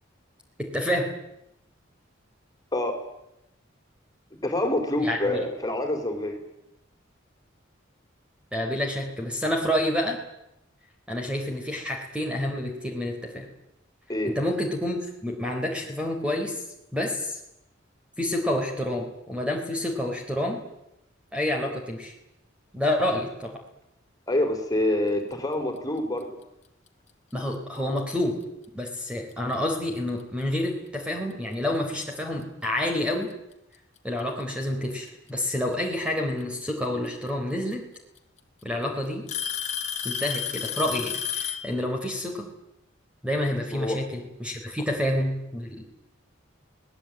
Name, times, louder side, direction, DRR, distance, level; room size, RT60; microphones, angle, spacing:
voice 1, 0.6-1.1 5.0-5.4 8.5-10.2 11.1-13.5 14.2-16.6 16.9-17.4 18.2-20.6 21.3-22.1 22.7-23.6 27.3-28.4 28.7-33.3 34.0-37.9 38.6-39.3 40.0-42.5 43.2-45.8, left 1 dB, 5° right, 1 dB, 3.9 m, -28 dB
voice 2, 4.3-6.4 14.1-14.3 24.3-26.3 43.7-44.0, left 1 dB, 20° left, 4 dB, 4.6 m, -26 dB
Alarm / Tick-tock, 27.8-28.0 28.9-29.0 29.8-29.9 31.5-31.6 32.9-33.0 34.2-34.6 36.4-36.5 37.7-37.8 38.2-38.6 39.3-41.7, left 8 dB, 35° left, 2.3 m, -31 dB
25.5 x 19.0 x 9.0 m, 0.85 s
head